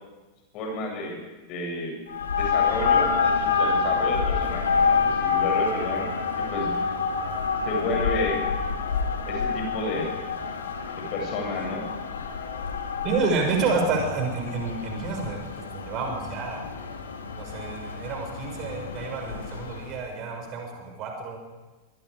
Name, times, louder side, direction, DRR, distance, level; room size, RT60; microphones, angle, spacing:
voice 1, 0.5-2.0 2.4-6.1 6.4-6.7 7.6-8.4 9.2-10.1 11.0-11.9, left 2 dB, 40° left, 1 dB, 7.9 m, -31 dB
sound 1, 2.1-20.0, left 5 dB, 65° left, 2.2 m, -27 dB
voice 2, 13.0-16.6 17.4-21.4, right 4 dB, 35° right, 2 dB, 6.0 m, -29 dB
24.0 x 23.0 x 5.0 m, 1.2 s
figure-of-eight pair, 90°, 0 cm